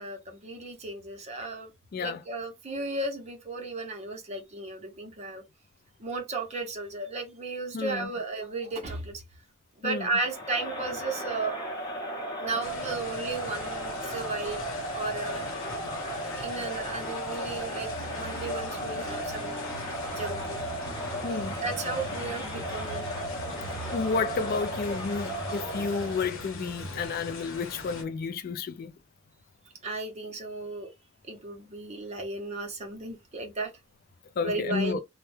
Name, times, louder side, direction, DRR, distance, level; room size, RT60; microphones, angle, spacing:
voice 1, 0.0-1.7 2.0-5.4 6.0-9.2 9.8-11.6 12.0-12.1 12.4-15.4 16.3-20.8 21.6-23.1 25.5-25.6 29.8-30.9 31.2-33.7 34.4-35.0, right 3 dB, 35° right, 0.7 m, -35 dB
voice 2, 7.7-8.1 9.8-10.0 21.2-21.6 23.9-28.9 34.4-35.0, left 4 dB, 45° left, 0.3 m, -31 dB
Crowd, 10.2-26.4, equal, 20° left, 0.8 m, -35 dB
sound 1, 12.6-28.0, left 3 dB, 80° left, 0.9 m, -42 dB
sound 2, 13.8-14.0 14.4-15.6 15.9-16.9 17.4-27.1, right 2 dB, 75° right, 0.6 m, -44 dB
2.2 x 2.1 x 3.1 m
head